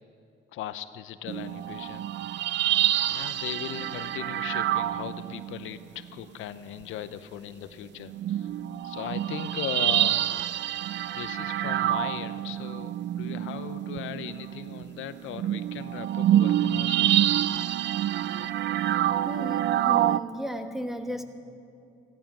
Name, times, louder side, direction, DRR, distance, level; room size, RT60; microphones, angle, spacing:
voice 1, 0.5-2.1 3.0-8.5 8.8-10.3 11.1-17.5, left 11 dB, 85° left, 12 dB, 0.6 m, -38 dB
sound 1, 1.3-5.8 6.8-6.9 8.1-20.2, right 12 dB, 60° right, 0.4 m, -27 dB
voice 2, 19.2-21.2, equal, ahead, 6 dB, 1.2 m, -35 dB
15.0 x 13.0 x 6.0 m, 2.6 s
cardioid pair, 90°, 20 cm